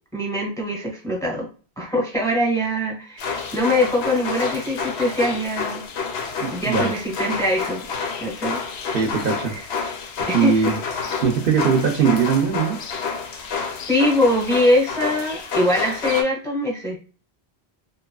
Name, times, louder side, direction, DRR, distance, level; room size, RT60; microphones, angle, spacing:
voice 1, 0.1-1.5 1.8-5.8 6.5-7.9 8.2-8.6 9.5-9.6 10.3-11.1 13.9-17.0, left 1 dB, 5° left, -2 dB, 1.0 m, -22 dB
sound 1, 3.2-16.2, left 5 dB, 80° left, 0.9 m, -29 dB
voice 2, 6.4-6.9 8.9-9.5 10.3-10.8 11.2-12.8, right 6 dB, 60° right, 1 dB, 0.7 m, -20 dB
2.8 x 2.3 x 2.3 m, 0.36 s
omnidirectional pair, 1.1 m